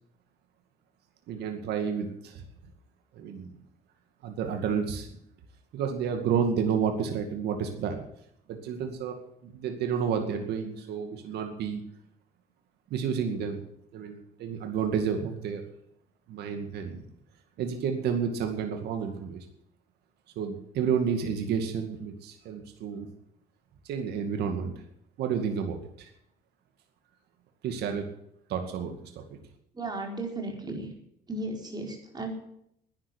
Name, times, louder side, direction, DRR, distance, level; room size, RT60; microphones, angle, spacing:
voice 1, 1.3-2.4 3.1-3.5 4.2-5.1 5.7-8.0 8.5-11.8 12.9-13.6 13.9-15.6 16.3-17.0 17.6-19.5 20.4-23.1 23.8-24.7 25.2-26.1 27.6-28.0 28.5-29.2, right 7 dB, 75° right, 5 dB, 2.2 m, -30 dB
voice 2, 29.7-30.9 31.3-32.3, right 2 dB, 25° right, 1 dB, 4.7 m, -35 dB
11.5 x 10.0 x 9.9 m, 0.75 s
cardioid pair, 110°, 17 cm